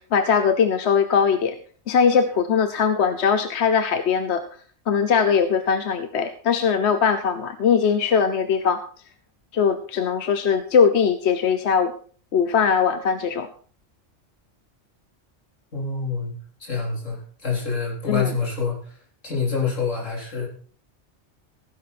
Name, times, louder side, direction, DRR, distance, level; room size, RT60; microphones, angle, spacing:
voice 1, 0.0-1.6 1.9-4.4 4.9-8.8 9.5-11.9 12.3-13.5 18.1-18.3, left 6 dB, 65° left, 10 dB, 1.1 m, -20 dB
voice 2, 15.7-16.3 16.6-18.9 19.2-20.5, left 5 dB, 80° left, -2 dB, 4.4 m, -26 dB
16.0 x 10.0 x 4.3 m, 0.44 s
omnidirectional pair, 1.3 m